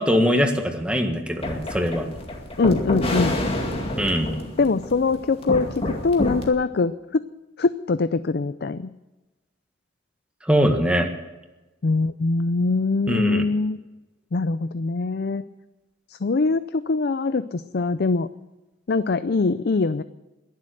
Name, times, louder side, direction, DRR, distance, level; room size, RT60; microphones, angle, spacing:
voice 1, 0.0-2.1 4.0-4.4 10.5-11.1 13.1-13.4, equal, 5° right, 4 dB, 1.7 m, -22 dB
sound 1, 1.4-6.5, left 1 dB, 30° left, 2.3 m, -28 dB
voice 2, 2.6-3.4 4.6-7.2 7.6-8.9 11.8-13.8 14.3-15.4 16.1-18.3 18.9-20.0, left 3 dB, 55° left, 13 dB, 0.5 m, -23 dB
21.5 x 7.6 x 7.9 m, 1.1 s
head